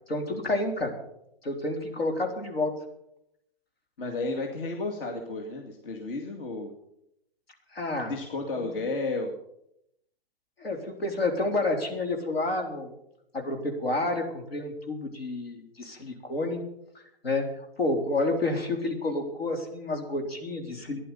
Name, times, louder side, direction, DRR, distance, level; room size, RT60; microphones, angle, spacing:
voice 1, 0.1-0.9 1.4-2.8 7.7-8.1 8.6-8.7 10.6-12.9 13.3-16.6 17.2-21.0, left 2 dB, 85° left, 4 dB, 3.8 m, -29 dB
voice 2, 4.0-6.7 8.1-9.3, left 3 dB, 65° left, 2 dB, 2.4 m, -32 dB
14.5 x 11.0 x 7.0 m, 0.78 s
hypercardioid pair, 125°, 29 cm